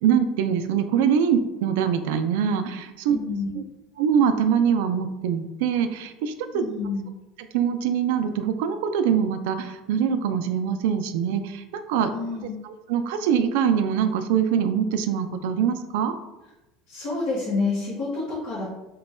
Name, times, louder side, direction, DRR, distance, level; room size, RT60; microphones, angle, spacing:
voice 1, 0.0-3.2 3.5-3.6 4.0-6.6 7.5-12.1 12.6-16.1, right 8 dB, 80° right, 9 dB, 0.3 m, -23 dB
voice 2, 3.1-3.5 6.5-7.0 12.1-12.5 16.9-18.6, left 3 dB, 50° left, -8 dB, 0.9 m, -28 dB
3.0 x 2.2 x 4.2 m, 0.99 s
cardioid pair, 165°, 0 cm